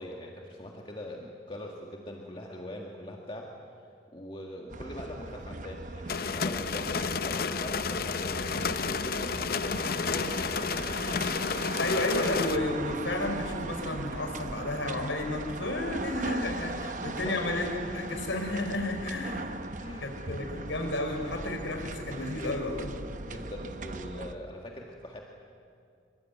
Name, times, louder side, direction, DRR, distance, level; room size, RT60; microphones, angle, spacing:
voice 1, 0.0-3.6 4.1-11.0 17.0-17.5 19.8-20.3 23.2-25.2, left 1 dB, 30° left, 0 dB, 2.0 m, -42 dB
sound 1, 4.7-24.3, right 3 dB, 45° right, 0.9 m, -39 dB
sound 2, 6.1-12.6, left 5 dB, 50° left, 0.6 m, -31 dB
voice 2, 11.8-19.6 20.0-22.9, left 2 dB, 90° left, 4 dB, 4.9 m, -32 dB
25.5 x 23.5 x 9.5 m, 2.4 s
head